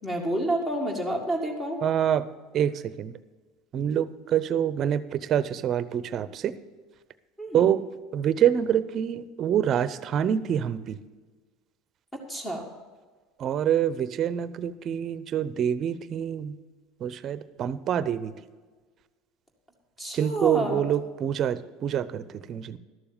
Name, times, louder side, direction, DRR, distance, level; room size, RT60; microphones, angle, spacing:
voice 1, 0.0-1.8 7.4-7.6 12.1-12.7 20.0-20.8, right 1 dB, 15° left, 2 dB, 2.0 m, -29 dB
voice 2, 1.8-2.3 2.5-3.1 3.7-6.6 7.5-7.8 8.1-11.0 13.4-16.6 17.0-18.3 20.1-22.8, right 9 dB, 45° right, 15 dB, 0.7 m, -26 dB
12.5 x 7.0 x 7.2 m, 1.4 s
supercardioid pair, 95°, 0 cm